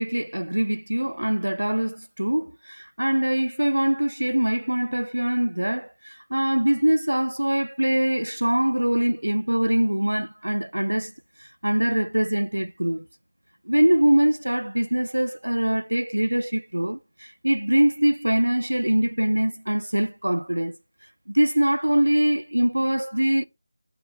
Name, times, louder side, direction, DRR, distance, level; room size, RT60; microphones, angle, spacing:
voice 1, 0.0-11.1 11.4-13.1 13.7-20.8 21.3-23.5, right 1 dB, 80° right, 0.4 m, -23 dB
7.9 x 3.7 x 4.1 m
figure-of-eight pair, 165°, 0 cm